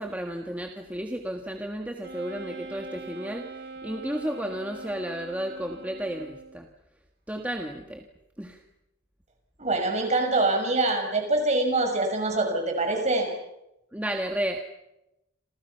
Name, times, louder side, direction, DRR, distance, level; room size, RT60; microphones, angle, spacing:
voice 1, 0.0-6.7 7.3-8.1 8.4-8.6 13.9-14.6, right 1 dB, 10° right, 3 dB, 1.6 m, -33 dB
Wind instrument woodwind instrument, 2.0-6.7, right 2 dB, 55° right, 3.1 m, -42 dB
voice 2, 9.6-13.3, right 2 dB, 35° right, 4 dB, 6.3 m, -24 dB
29.5 x 28.0 x 5.8 m, 0.90 s
head